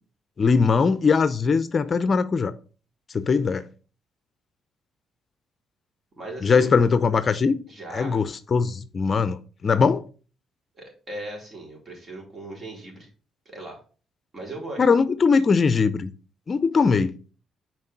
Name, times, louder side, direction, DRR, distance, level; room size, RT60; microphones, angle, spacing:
voice 1, 0.4-2.5 3.1-3.6 6.4-7.6 7.9-9.4 9.6-10.0 14.8-16.1 16.5-17.1, left 5 dB, 40° left, 0.6 m, -20 dB
voice 2, 6.2-6.7 7.7-8.2 10.8-13.1 13.5-13.8 14.3-14.8, right 2 dB, 40° right, 4.0 m, -38 dB
6.4 x 4.6 x 5.8 m
cardioid pair, 90°, 0 cm